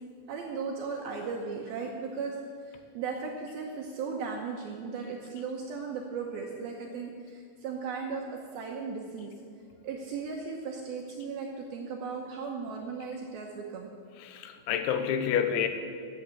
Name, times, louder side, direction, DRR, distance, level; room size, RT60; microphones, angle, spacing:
voice 1, 0.3-2.4 2.6-9.3 9.8-13.9, right 5 dB, 75° right, 0 dB, 2.2 m, -36 dB
voice 2, 14.2-15.7, left 8 dB, 80° left, 8 dB, 2.9 m, -28 dB
11.0 x 8.3 x 8.2 m, 2.3 s
omnidirectional pair, 5.5 m